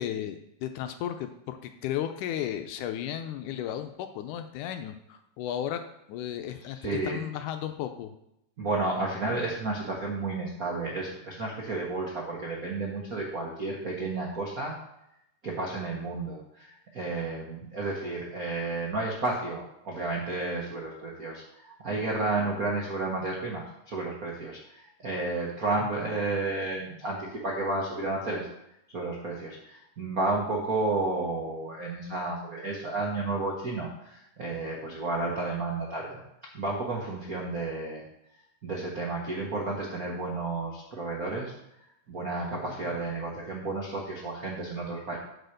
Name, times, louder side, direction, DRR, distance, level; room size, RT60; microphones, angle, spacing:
voice 1, 0.0-5.8 6.1-8.1 25.8-25.9 42.7-43.0, left 10 dB, 80° left, 7 dB, 2.0 m, -34 dB
voice 2, 6.7-7.2 8.6-14.8 15.4-28.5 28.9-36.2 36.5-38.0 38.6-41.5 42.1-45.2, right 2 dB, 80° right, -2 dB, 0.8 m, -32 dB
9.1 x 4.3 x 6.5 m, 0.82 s
omnidirectional pair, 3.9 m